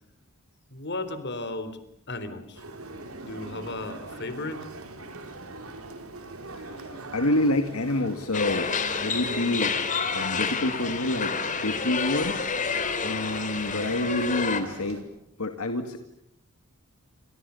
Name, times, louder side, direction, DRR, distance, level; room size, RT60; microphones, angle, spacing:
voice 1, 0.7-1.8 2.1-2.6 3.2-4.7, left 2 dB, 50° left, 11 dB, 3.8 m, -35 dB
sound 1, 2.6-15.0, right 2 dB, 75° right, 4.5 m, -41 dB
voice 2, 6.6-6.9 7.1-8.7 9.0-9.7 10.1-11.3 11.6-12.4 13.0-15.0 15.4-16.0, left 1 dB, 75° left, 6 dB, 2.1 m, -27 dB
sound 2, 8.3-14.6, left 5 dB, 35° left, 3.0 m, -29 dB
29.5 x 26.5 x 7.0 m, 0.75 s
head